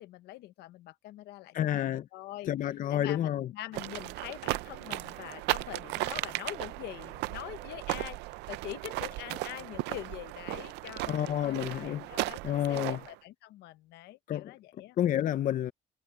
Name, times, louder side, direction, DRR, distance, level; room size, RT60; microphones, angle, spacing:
voice 1, 0.0-2.5 2.9-8.2 8.5-15.0, left 16 dB, 85° left, 1.1 m, -44 dB
voice 2, 1.5-2.1 2.5-3.5 11.1-12.1 12.4-13.0 14.3-14.5 15.0-15.7, left 11 dB, 50° left, 0.6 m, -29 dB
sound 1, 3.7-13.1, right 20 dB, 90° right, 0.5 m, -36 dB
cardioid pair, 110°, 17 cm